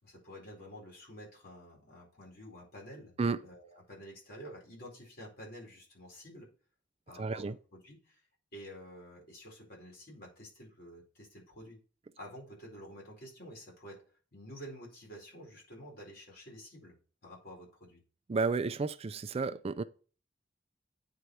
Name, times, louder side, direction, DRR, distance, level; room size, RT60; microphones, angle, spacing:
voice 1, 0.0-6.5 7.1-8.2 8.5-11.8 12.2-14.0 14.3-17.0 17.2-18.0, equal, 55° left, 4.5 m, -50 dB
voice 2, 7.2-7.6 18.3-19.8, right 4 dB, 30° right, 0.4 m, -32 dB
9.1 x 4.8 x 4.2 m
head